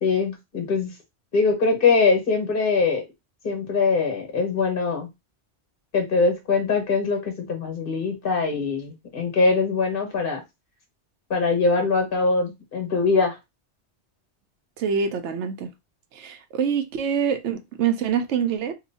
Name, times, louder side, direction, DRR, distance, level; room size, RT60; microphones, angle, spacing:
voice 1, 0.0-0.9 1.3-3.0 3.4-5.1 5.9-10.4 11.3-13.4, left 4 dB, 55° left, 1.3 m, -22 dB
voice 2, 14.8-15.7 16.1-18.7, right 7 dB, 85° right, 0.9 m, -25 dB
3.0 x 2.3 x 4.0 m
omnidirectional pair, 1.2 m